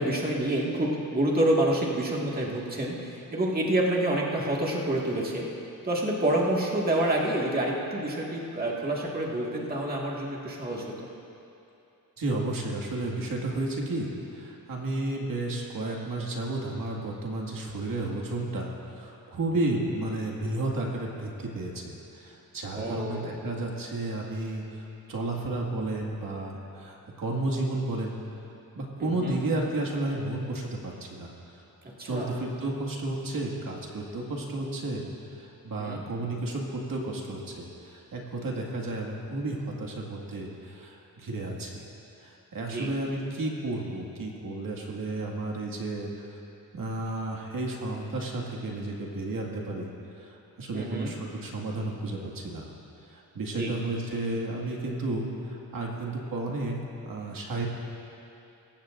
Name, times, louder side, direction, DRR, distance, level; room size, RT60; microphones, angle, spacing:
voice 1, 0.0-5.5 5.8-11.1 22.7-23.3 29.0-29.4 32.0-32.4 35.8-36.0 42.6-42.9 50.7-51.1 53.5-53.7, right 1 dB, 25° right, -3 dB, 1.9 m, -28 dB
voice 2, 12.2-28.2 28.8-31.3 32.0-35.0 35.3-41.9 42.2-46.4 46.7-49.9 50.2-52.7 53.1-56.8 57.0-57.7, right 2 dB, 65° right, -1 dB, 2.0 m, -32 dB
26.0 x 15.0 x 2.6 m, 2.8 s
wide cardioid pair, 120°, 37 cm